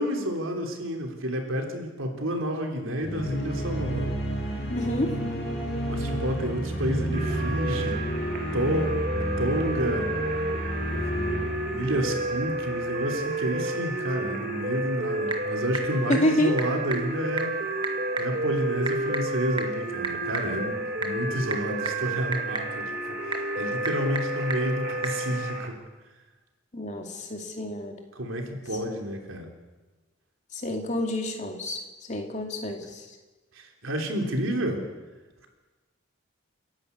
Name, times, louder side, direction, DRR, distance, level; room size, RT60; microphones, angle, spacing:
voice 1, 0.0-4.1 5.9-8.0 8.5-9.0 9.4-10.1 10.8-17.5 18.2-25.8 28.1-29.5 33.5-34.8, equal, 75° right, 3 dB, 3.3 m, -30 dB
sound 1, 3.0-13.0, right 1 dB, 50° left, 6.3 m, -31 dB
voice 2, 4.7-5.1 16.1-16.5 26.7-28.0 30.5-31.8 32.1-33.1, left 1 dB, 35° left, 3 dB, 2.5 m, -28 dB
sound 2, 7.1-25.7, right 1 dB, 45° right, 2.2 m, -31 dB
Typing / Telephone, 14.7-25.2, right 3 dB, 25° right, 1.8 m, -37 dB
29.5 x 11.0 x 8.5 m, 1.2 s
head